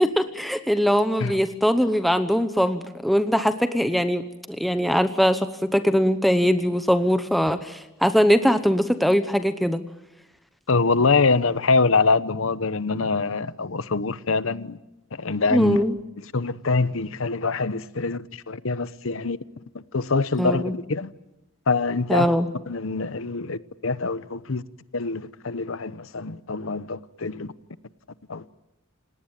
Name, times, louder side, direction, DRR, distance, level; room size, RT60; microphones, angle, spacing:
voice 1, 0.0-9.8 15.5-15.9 20.4-20.7 22.1-22.5, equal, ahead, 0.9 m, -21 dB
voice 2, 10.7-14.8 15.1-15.8 16.2-19.4 19.7-21.1 21.7-22.3 22.7-24.6 24.9-27.5 28.3-28.4, left 4 dB, 70° left, 0.9 m, -24 dB
29.5 x 18.5 x 9.0 m
head